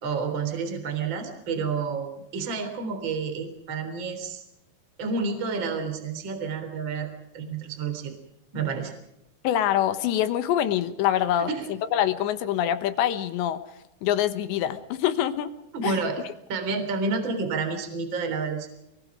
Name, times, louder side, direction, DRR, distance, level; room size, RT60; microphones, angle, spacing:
voice 1, 0.0-4.4 5.0-8.1 8.5-8.9 11.5-11.7 15.7-16.2 16.5-18.7, right 4 dB, 30° right, 7 dB, 3.7 m, -29 dB
voice 2, 9.4-11.5 11.9-13.6 14.0-15.5 15.8-16.0, left 11 dB, 75° left, 11 dB, 3.3 m, -25 dB
28.5 x 22.0 x 5.0 m, 0.86 s
omnidirectional pair, 5.3 m